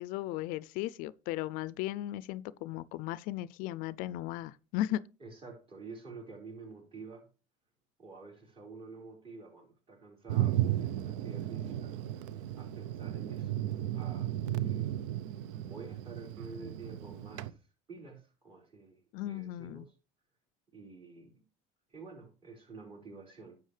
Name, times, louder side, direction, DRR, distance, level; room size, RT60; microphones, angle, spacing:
voice 1, 0.0-5.0 19.1-19.9, left 14 dB, 65° left, 0.4 m, -36 dB
voice 2, 5.2-7.3 8.0-11.9 12.5-13.6 13.9-14.9 15.6-17.6 17.9-19.9 20.7-21.3 21.9-23.6, right 3 dB, 35° right, 4.8 m, -49 dB
Thunder, 10.3-17.5, right 13 dB, 90° right, 0.6 m, -34 dB
11.0 x 7.9 x 3.3 m
supercardioid pair, 125°, 15 cm